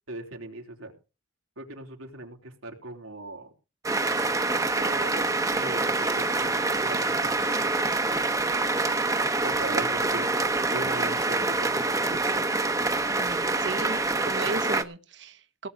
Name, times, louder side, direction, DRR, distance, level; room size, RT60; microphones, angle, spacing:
voice 1, 0.1-0.9 1.6-3.5 4.7-7.9 9.4-10.3 10.7-12.4, right 2 dB, 85° right, 2 dB, 3.5 m, -40 dB
sound 1, 3.8-14.8, right 3 dB, 15° right, 1.0 m, -26 dB
voice 2, 13.2-15.7, right 3 dB, 55° right, 10 dB, 1.1 m, -36 dB
18.0 x 8.4 x 5.2 m, 0.32 s
head